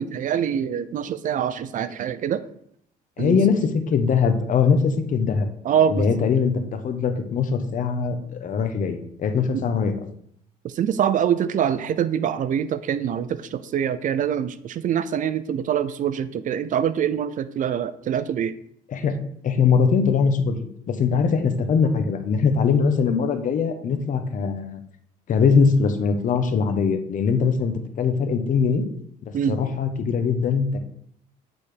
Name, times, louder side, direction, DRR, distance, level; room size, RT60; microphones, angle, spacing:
voice 1, 0.0-2.4 3.2-3.4 5.6-6.1 9.5-9.6 10.6-18.5 29.3-29.6, right 9 dB, 50° right, 14 dB, 0.5 m, -24 dB
voice 2, 3.2-5.5 5.9-9.9 18.9-19.2 19.4-20.6 20.9-24.8 25.3-28.8 29.5-30.8, left 5 dB, 50° left, 8 dB, 1.1 m, -21 dB
8.7 x 4.2 x 5.0 m, 0.67 s
cardioid pair, 110°, 17 cm